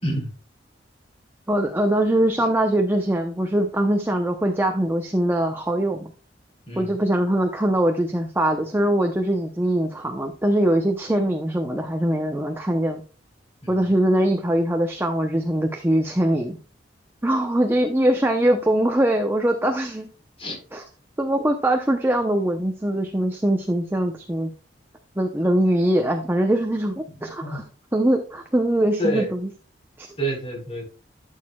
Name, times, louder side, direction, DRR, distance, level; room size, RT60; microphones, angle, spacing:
voice 1, 1.5-6.1 6.8-13.0 13.7-16.6 17.2-20.1 20.7-20.8 21.2-24.5 25.2-27.6 27.9-29.5 30.0-30.1, right 1 dB, 10° right, 3 dB, 0.7 m, -22 dB
voice 2, 6.7-7.0 13.6-13.9 20.4-20.6 27.2-27.6 29.0-29.3 30.2-30.8, right 1 dB, 30° left, 0 dB, 4.1 m, -28 dB
12.5 x 6.5 x 2.3 m, 0.37 s
head